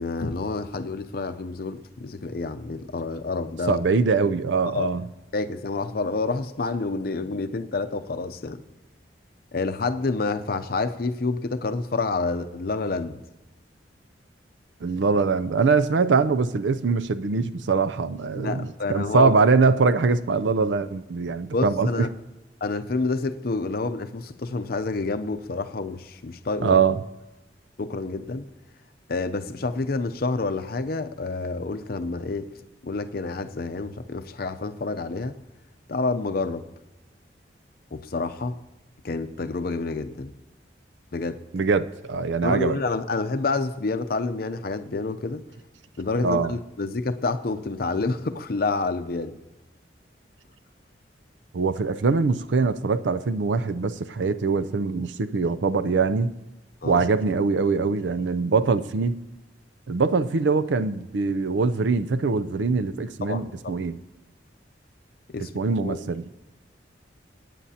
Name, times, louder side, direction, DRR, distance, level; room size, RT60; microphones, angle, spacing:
voice 1, 0.0-3.8 4.7-4.9 5.3-8.6 9.5-13.2 18.3-19.3 21.5-22.1 22.6-26.8 27.8-28.5 29.1-32.5 32.8-35.4 35.9-36.6 37.9-38.5 39.0-40.3 41.1-41.4 42.4-45.4 46.0-49.3 56.8-57.0 63.2-63.7 65.3-65.5 65.8-66.0, left 3 dB, 55° left, 0.6 m, -28 dB
voice 2, 3.7-5.1 14.8-22.1 26.6-27.0 41.5-42.8 46.2-46.6 51.5-56.3 56.8-59.2 59.9-64.0 65.5-66.3, right 4 dB, 85° right, 0.5 m, -23 dB
17.5 x 9.2 x 2.8 m
head